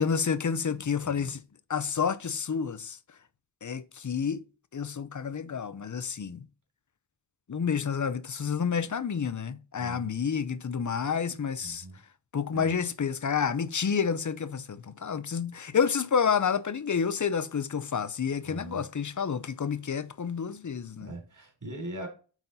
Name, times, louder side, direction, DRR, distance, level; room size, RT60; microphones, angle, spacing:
voice 1, 0.0-1.4 1.7-3.0 3.6-4.4 4.7-6.4 7.5-11.8 12.3-21.1, left 6 dB, 40° left, 0.8 m, -29 dB
voice 2, 0.6-1.3 9.8-10.1 11.6-12.0 12.5-12.8 18.4-18.9 21.0-22.1, right 1 dB, 45° right, 3.8 m, -42 dB
9.1 x 4.1 x 4.1 m
wide cardioid pair, 75°, 44 cm